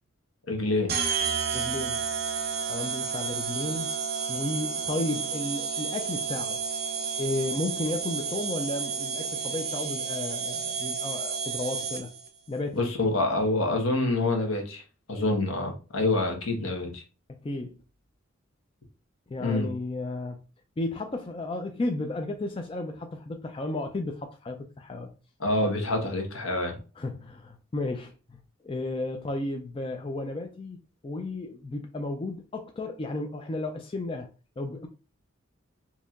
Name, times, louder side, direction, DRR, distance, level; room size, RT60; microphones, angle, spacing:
voice 1, 0.5-0.9 12.8-14.8 15.1-17.0 19.4-19.7 25.4-26.8, left 2 dB, 80° left, 1.1 m, -26 dB
sound 1, 0.9-12.3, right 6 dB, 45° right, 0.7 m, -31 dB
voice 2, 1.5-2.0 2.6-3.9 4.3-6.6 7.2-12.1 12.5-12.8 17.4-17.8 19.3-20.4 20.8-25.1 27.0-28.1 28.6-34.3 34.6-34.9, left 2 dB, 25° left, 0.3 m, -33 dB
4.3 x 2.8 x 2.4 m
head